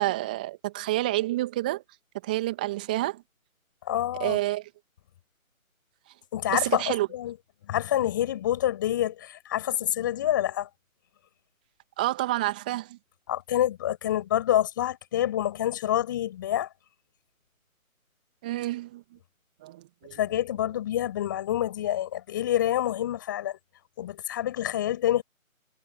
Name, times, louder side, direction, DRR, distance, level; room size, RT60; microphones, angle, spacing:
voice 1, 0.0-1.8 2.2-3.2 4.2-4.6 6.5-7.1 12.0-13.0 18.4-19.0 19.6-20.2, right 17 dB, 5° right, 2.1 m, -28 dB
voice 2, 3.9-4.4 6.3-7.3 7.7-10.7 13.3-16.7 20.2-23.6 24.0-25.2, left 12 dB, 15° left, 7.1 m, -27 dB
figure-of-eight pair, 160°, 42 cm